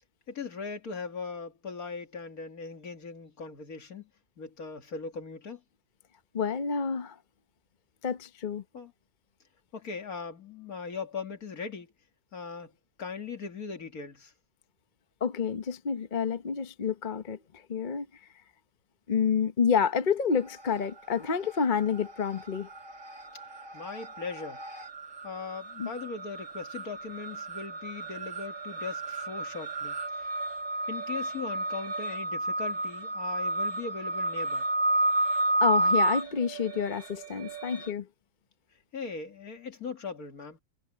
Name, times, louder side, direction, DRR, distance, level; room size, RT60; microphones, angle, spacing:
voice 1, 0.3-4.1 4.4-5.6 8.7-8.9 9.7-11.9 12.3-12.7 13.0-14.3 23.7-24.6 25.2-30.3 30.9-34.7 38.9-40.6, left 5 dB, 65° left, 2.4 m, -39 dB
voice 2, 6.3-7.1 8.0-8.6 15.2-17.4 17.7-18.1 19.1-22.7 25.8-25.9 35.6-38.1, left 6 dB, 35° left, 0.9 m, -28 dB
sound 1, 20.4-21.0 21.3-37.9, right 2 dB, 50° right, 2.7 m, -32 dB
omnidirectional pair, 1.7 m